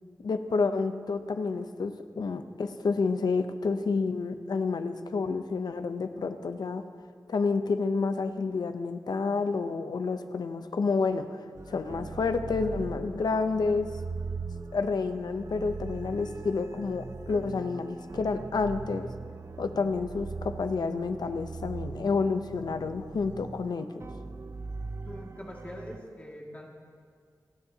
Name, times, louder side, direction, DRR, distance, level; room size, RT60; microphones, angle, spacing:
voice 1, 0.2-6.8 7.3-13.9 14.7-19.1 19.6-23.9, left 4 dB, 80° left, 9 dB, 0.7 m, -29 dB
sound 1, 11.6-26.0, right 4 dB, 40° right, 0.5 m, -40 dB
voice 2, 25.0-26.7, equal, 20° left, -2 dB, 2.2 m, -43 dB
29.0 x 9.8 x 2.9 m, 2.1 s
wide cardioid pair, 105°, 7 cm